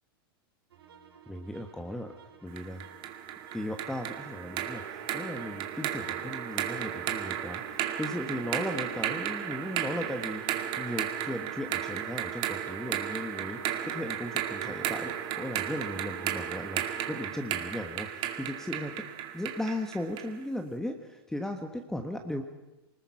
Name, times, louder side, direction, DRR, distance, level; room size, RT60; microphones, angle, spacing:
sound 1, 0.7-17.3, right 6 dB, 85° right, 3.0 m, -49 dB
voice 1, 1.3-2.1 2.4-2.8 3.5-18.9 19.3-22.4, left 1 dB, 5° left, 5 dB, 1.3 m, -37 dB
sound 2, 2.6-20.4, right 11 dB, 40° right, 2.1 m, -34 dB
24.0 x 20.0 x 5.8 m, 1.0 s
hypercardioid pair, 125°, 12 cm